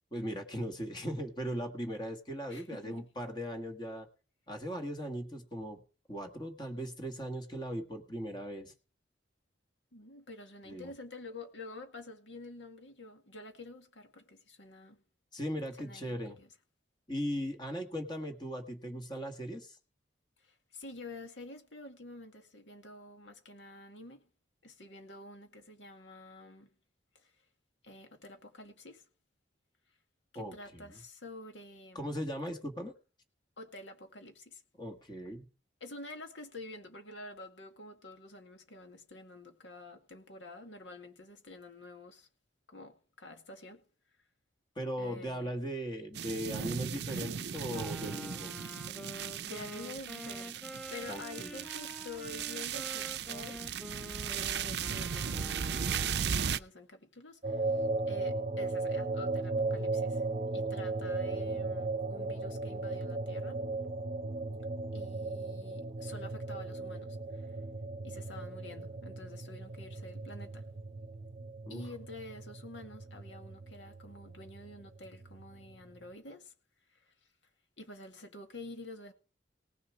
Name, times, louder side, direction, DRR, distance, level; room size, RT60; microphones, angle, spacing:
voice 1, 0.1-4.1 4.5-5.8 6.1-8.7 10.6-10.9 15.3-16.4 17.1-19.8 30.3-31.0 31.9-32.9 34.8-35.4 44.7-48.5 51.1-51.6 71.6-71.8, equal, 25° left, 1.6 m, -38 dB
voice 2, 2.5-3.1 9.9-15.0 15.7-16.5 20.4-24.2 24.6-26.7 27.1-27.3 27.8-29.0 30.3-32.2 33.6-34.6 35.8-42.3 42.7-43.8 45.0-45.5 49.4-53.6 54.3-60.3 60.5-63.6 64.9-67.5 68.0-70.7 71.7-76.5 76.9-77.1 77.8-79.1, left 2 dB, 85° left, 2.2 m, -49 dB
sound 1, 46.2-56.6, right 7 dB, 60° right, 0.5 m, -37 dB
Wind instrument woodwind instrument, 47.7-56.3, equal, 5° left, 0.6 m, -47 dB
sound 2, 57.4-76.1, right 3 dB, 35° right, 0.9 m, -37 dB
18.5 x 7.2 x 4.8 m
head